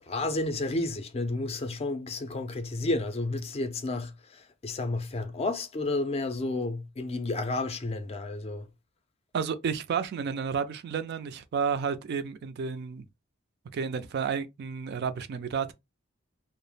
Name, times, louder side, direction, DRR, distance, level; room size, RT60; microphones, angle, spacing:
voice 1, 0.0-8.7, left 2 dB, 30° left, 0.4 m, -31 dB
voice 2, 9.3-13.0 13.7-15.7, right 6 dB, 55° right, 0.3 m, -31 dB
2.2 x 2.0 x 3.1 m
head